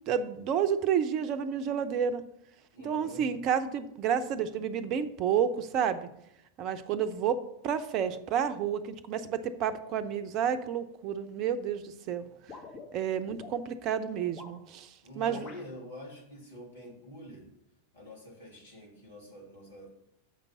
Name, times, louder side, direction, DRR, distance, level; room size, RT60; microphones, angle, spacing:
voice 1, 0.1-2.2 2.8-6.1 6.6-12.3 12.9-15.5, right 8 dB, 40° right, 12 dB, 0.7 m, -30 dB
voice 2, 2.7-3.3 15.0-17.5 17.9-19.9, left 1 dB, 65° left, -2 dB, 3.1 m, -47 dB
sound 1, 12.5-13.6 14.2-14.6 15.3-15.6, left 4 dB, 40° left, 2.0 m, -46 dB
7.5 x 5.2 x 7.2 m, 0.81 s
figure-of-eight pair, 90°, 0 cm